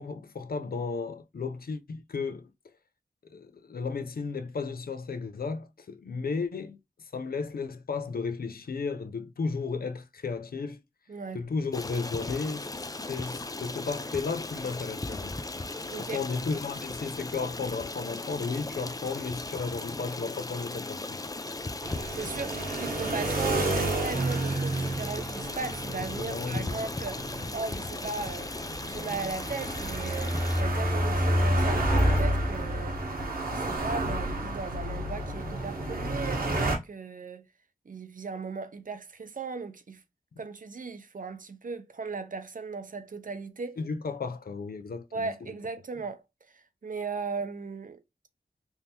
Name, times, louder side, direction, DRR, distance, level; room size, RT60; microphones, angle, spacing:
voice 1, 0.0-2.5 3.3-6.8 7.1-10.8 11.3-12.7 13.1-15.6 16.0-21.2 25.9-26.8 43.8-45.3, left 4 dB, 90° left, 0.5 m, -34 dB
voice 2, 11.1-11.4 15.9-16.2 22.1-28.6 28.9-33.0 33.5-37.5 37.9-40.0 40.4-43.8 45.1-48.0, right 4 dB, 65° right, 0.6 m, -37 dB
Stream, 11.7-30.6, left 2 dB, 25° left, 0.4 m, -37 dB
sound 1, 21.8-36.8, right 1 dB, 85° right, 1.2 m, -30 dB
3.5 x 2.6 x 2.8 m
wide cardioid pair, 50°, 15 cm